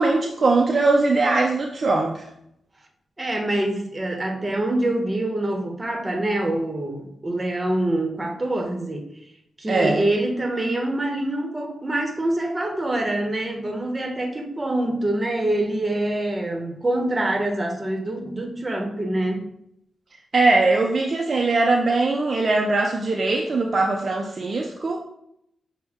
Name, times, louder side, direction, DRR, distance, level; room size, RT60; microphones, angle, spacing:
voice 1, 0.0-2.2 9.7-10.1 20.3-25.0, right 3 dB, 50° right, 0 dB, 0.5 m, -21 dB
voice 2, 3.2-9.1 9.6-19.4, right 1 dB, 25° right, 3 dB, 1.0 m, -25 dB
6.0 x 2.1 x 3.6 m, 0.76 s
cardioid pair, 50°, 0 cm